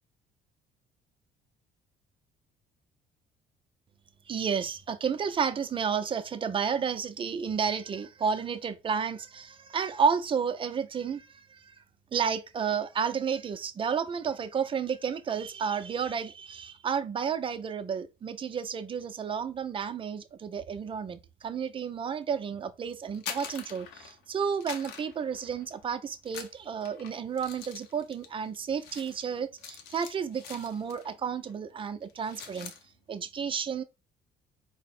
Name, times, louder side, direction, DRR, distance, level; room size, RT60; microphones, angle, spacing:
voice 1, 4.3-11.7 12.1-32.7 33.1-33.8, right 6 dB, 30° right, 0.5 m, -31 dB
sound 1, 23.0-24.3 24.6-25.9 26.2-31.2 31.5-31.7 32.0-32.8, left 7 dB, 80° left, 0.7 m, -44 dB
4.5 x 2.0 x 4.1 m
cardioid pair, 110°, 17 cm